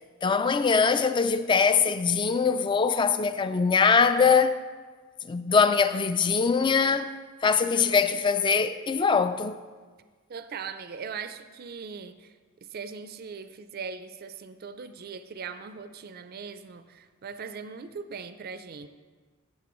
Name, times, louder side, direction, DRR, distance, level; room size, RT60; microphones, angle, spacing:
voice 1, 0.2-4.6 5.3-7.1 7.4-9.5, left 5 dB, 20° left, 0.3 m, -22 dB
voice 2, 10.3-12.3 12.6-18.9, right 5 dB, 45° right, 0.4 m, -40 dB
14.5 x 7.4 x 3.0 m
head